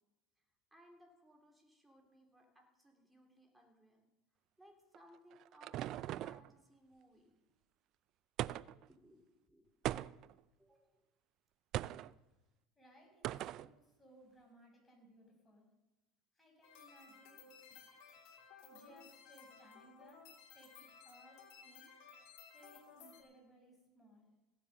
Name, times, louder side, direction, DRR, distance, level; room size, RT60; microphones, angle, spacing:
voice 1, 0.7-4.1 4.6-7.3 8.9-9.7 10.6-11.0, equal, 5° right, 2 dB, 3.2 m, -64 dB
sound 1, 4.9-6.5 8.4-8.9 9.8-10.4 11.7-12.1 13.2-13.7, right 14 dB, 50° right, 0.3 m, -40 dB
voice 2, 12.7-15.7 16.3-18.0 18.4-20.2 20.5-21.9 22.5-24.3, right 1 dB, 15° left, -1 dB, 6.2 m, -63 dB
sound 2, 16.6-23.2, left 6 dB, 65° left, 2.9 m, -58 dB
17.0 x 7.5 x 6.6 m, 1.1 s
supercardioid pair, 105°, 0 cm